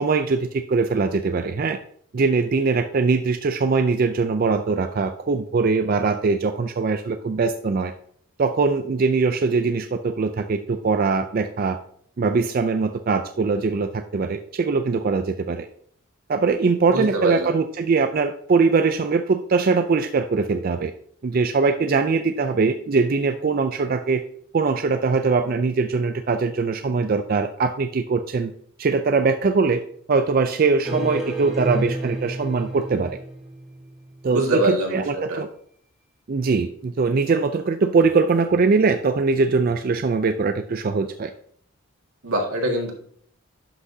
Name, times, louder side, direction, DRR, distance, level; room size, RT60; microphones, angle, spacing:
voice 1, 0.0-1.8 2.1-7.9 8.4-11.8 12.2-15.7 16.3-20.9 21.2-24.2 24.5-28.5 28.8-29.8 30.1-33.2 34.2-35.5 36.3-41.3, right 4 dB, 40° right, 8 dB, 0.3 m, -22 dB
voice 2, 16.9-17.5 34.3-35.4 42.2-42.9, right 1 dB, 85° right, 1 dB, 1.8 m, -23 dB
sound 1, 30.8-33.9, right 1 dB, ahead, 1.3 m, -30 dB
11.5 x 5.9 x 2.7 m, 0.62 s
head